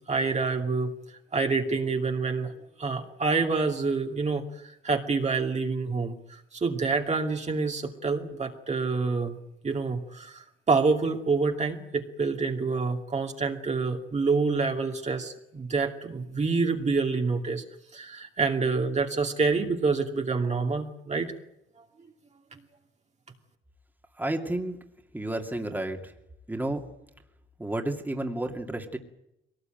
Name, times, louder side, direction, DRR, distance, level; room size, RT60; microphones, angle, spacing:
voice 1, 0.1-0.9 1.3-2.5 2.8-9.4 9.6-17.6 17.9-21.3, right 4 dB, 35° right, 2 dB, 2.6 m, -27 dB
voice 2, 24.2-24.8 25.1-26.1 26.5-26.8 27.6-29.0, right 1 dB, 10° right, 3 dB, 2.6 m, -31 dB
21.5 x 18.5 x 9.2 m, 0.84 s
cardioid pair, 90°, 20 cm